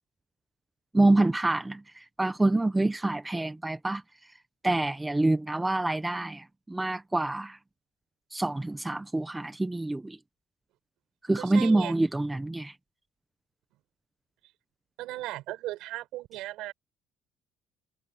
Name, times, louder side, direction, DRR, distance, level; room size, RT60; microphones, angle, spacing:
voice 1, 0.9-4.0 4.6-7.6 8.3-10.2 11.3-12.7, right 2 dB, 10° right, 0.9 m, -26 dB
voice 2, 11.4-11.9 15.0-16.7, right 17 dB, 75° right, 5.8 m, -37 dB
cardioid pair, 165°, 0 cm